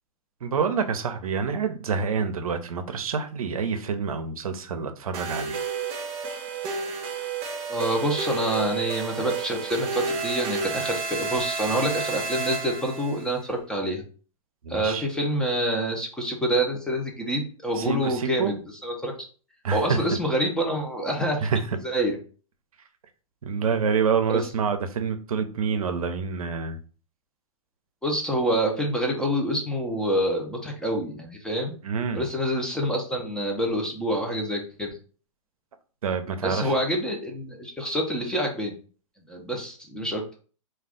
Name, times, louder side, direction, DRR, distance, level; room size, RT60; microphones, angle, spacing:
voice 1, 0.4-5.6 14.6-15.1 17.7-18.5 19.6-20.0 21.4-21.8 23.4-26.8 31.8-32.2 36.0-36.8, right 6 dB, 80° right, 0.5 m, -27 dB
sound 1, 5.1-13.2, right 4 dB, 35° right, 0.8 m, -31 dB
voice 2, 7.7-14.0 14.7-18.6 18.8-19.2 19.7-21.5 21.8-22.2 24.3-24.5 28.0-31.7 32.1-35.0 36.4-38.7 39.3-40.2, equal, 5° left, 0.5 m, -27 dB
2.4 x 2.3 x 3.5 m
hypercardioid pair, 125°, 18 cm